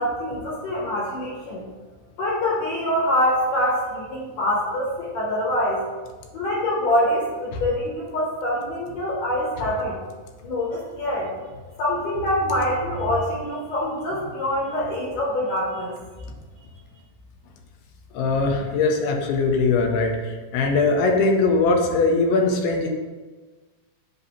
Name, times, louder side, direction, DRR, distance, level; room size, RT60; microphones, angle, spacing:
voice 1, 0.0-1.6 2.2-5.8 6.3-10.0 10.4-11.3 11.8-15.9, left 1 dB, 65° left, -4 dB, 2.2 m, -25 dB
voice 2, 18.1-22.9, left 3 dB, 85° left, 2 dB, 2.6 m, -21 dB
8.0 x 2.8 x 5.6 m, 1.3 s
omnidirectional pair, 4.7 m